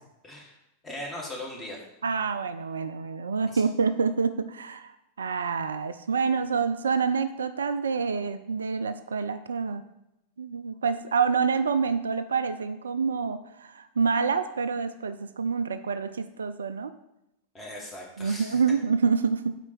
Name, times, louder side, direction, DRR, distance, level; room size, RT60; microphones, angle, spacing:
voice 1, 0.2-0.5 0.8-1.8 3.5-3.6 17.5-18.6, left 1 dB, 15° left, -2 dB, 1.8 m, -39 dB
voice 2, 2.0-9.8 10.4-16.9 18.2-19.5, right 5 dB, 70° right, 11 dB, 0.3 m, -27 dB
4.4 x 4.4 x 5.9 m, 0.88 s
figure-of-eight pair, 90°, 0 cm